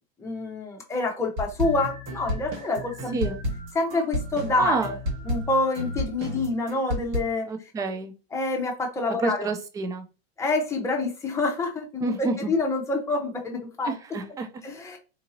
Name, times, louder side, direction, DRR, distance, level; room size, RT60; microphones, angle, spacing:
voice 1, 0.2-3.3 3.7-5.0 5.3-7.5 8.3-9.5 10.4-13.9 14.6-15.0, left 2 dB, 10° left, 0 dB, 0.9 m, -27 dB
sound 1, 1.4-7.2, left 1 dB, 40° right, 1.5 m, -31 dB
voice 2, 4.6-4.9 7.5-8.1 9.2-10.0 12.0-12.5 13.8-14.5, right 3 dB, 10° right, 7 dB, 0.3 m, -28 dB
4.0 x 2.7 x 2.7 m, 0.32 s
supercardioid pair, 130°, 32 cm